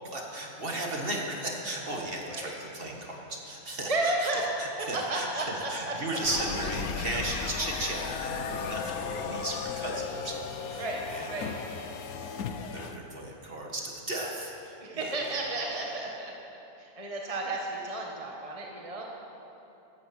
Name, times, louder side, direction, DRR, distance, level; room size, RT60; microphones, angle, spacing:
voice 1, 0.0-11.6 12.2-15.4, right 2 dB, 40° right, 0 dB, 1.9 m, -36 dB
voice 2, 3.9-4.5 4.8-5.9 10.8-11.0 11.3-11.5 14.8-16.3 16.8-19.0, right 2 dB, 25° right, -1 dB, 1.4 m, -32 dB
sound 1, 6.2-13.0, left 6 dB, 85° left, 1.3 m, -35 dB
15.5 x 13.5 x 6.0 m, 2.9 s
omnidirectional pair, 1.5 m